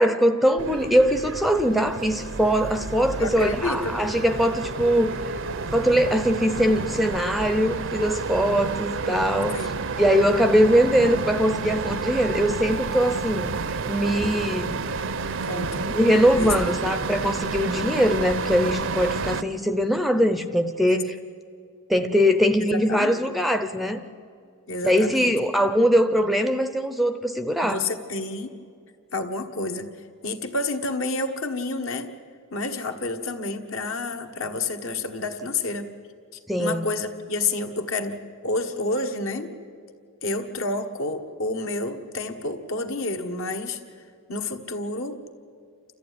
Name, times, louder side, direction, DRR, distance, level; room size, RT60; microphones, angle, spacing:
voice 1, 0.0-5.3 5.7-9.7 10.0-13.5 13.9-14.8 15.9-21.1 21.9-24.0 24.8-27.8 36.5-36.8, equal, ahead, 9 dB, 0.6 m, -22 dB
sound 1, 0.6-19.4, right 4 dB, 60° right, 0.7 m, -30 dB
voice 2, 3.2-4.0 9.5-9.7 15.4-15.9 16.3-16.5 16.8-16.9 20.8-21.0 22.6-23.4 24.7-25.3 27.6-28.5 29.1-29.9 30.2-32.1 32.5-35.9 36.6-39.5 40.2-43.8 44.3-45.2, left 2 dB, 60° left, 5 dB, 1.5 m, -29 dB
29.0 x 14.0 x 9.4 m, 2.3 s
head